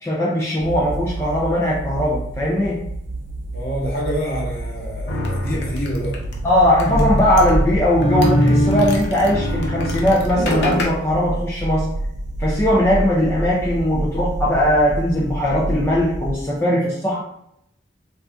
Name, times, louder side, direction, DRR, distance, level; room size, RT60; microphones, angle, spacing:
voice 1, 0.0-2.8 6.4-11.9 12.4-17.2, left 1 dB, 15° left, -6 dB, 0.4 m, -19 dB
sound 1, 0.6-16.3, right 2 dB, 65° right, 0.3 m, -29 dB
voice 2, 3.5-6.2, equal, 55° left, -4 dB, 1.0 m, -27 dB
sound 2, 5.1-10.8, equal, 70° left, 0.6 m, -22 dB
2.4 x 2.4 x 3.3 m, 0.76 s
head